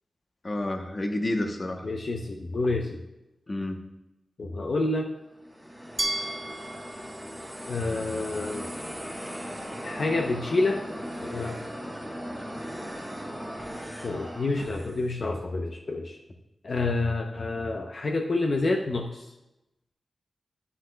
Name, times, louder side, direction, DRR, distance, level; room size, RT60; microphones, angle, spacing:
voice 1, 0.4-1.8 3.5-3.8, left 1 dB, 35° left, 4 dB, 0.9 m, -29 dB
voice 2, 1.8-3.0 4.4-5.1 7.7-8.7 9.8-10.8 11.2-11.6 14.0-16.2 16.6-19.3, left 2 dB, 55° left, 3 dB, 0.7 m, -28 dB
sound 1, 5.4-15.1, equal, ahead, 1.2 m, -38 dB
Glass, 6.0-8.9, right 1 dB, 20° right, 0.4 m, -36 dB
10.0 x 9.9 x 2.3 m, 0.95 s
wide cardioid pair, 110°, 0 cm